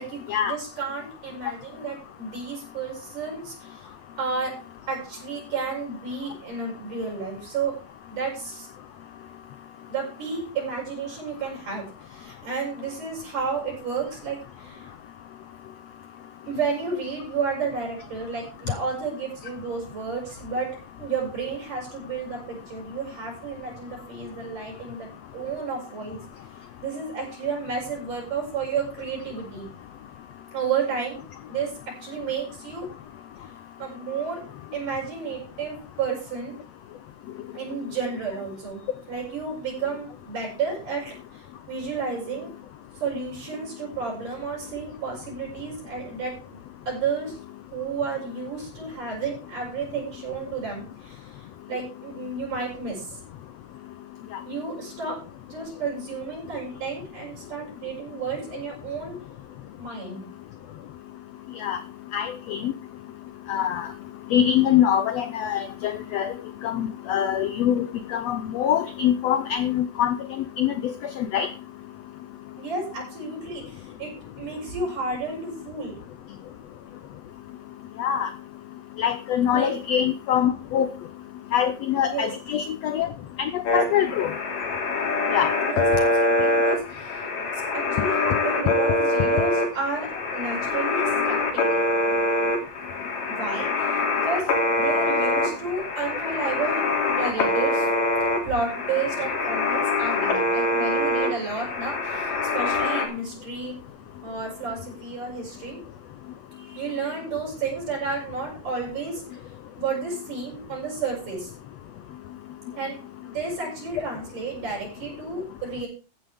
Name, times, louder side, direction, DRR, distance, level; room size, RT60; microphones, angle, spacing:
voice 1, 0.0-4.6 4.9-7.8 8.1-8.7 9.9-14.9 16.5-20.7 21.0-26.2 26.8-29.7 30.5-31.2 31.5-32.9 33.8-34.5 34.7-36.5 37.5-42.5 42.9-46.6 46.9-47.4 47.7-53.2 54.4-55.2 55.5-59.2 59.8-60.2 72.6-76.0 79.5-79.7 82.0-82.3 85.6-91.8 93.3-97.9 98.4-103.7 104.2-105.8 106.5-109.5 109.8-111.5 112.8-113.0 113.2-115.9, right 4 dB, 65° right, -3 dB, 8.2 m, -32 dB
voice 2, 62.1-62.7 63.5-63.9 64.3-66.3 66.6-70.2 70.6-71.5 78.0-78.3 79.0-80.9 81.5-83.1 83.4-84.3 85.3-85.5, left 10 dB, 85° left, 12 dB, 1.4 m, -24 dB
sound 1, 83.7-103.1, left 2 dB, 70° left, 4.4 m, -24 dB
14.5 x 11.5 x 3.6 m, 0.35 s
omnidirectional pair, 4.0 m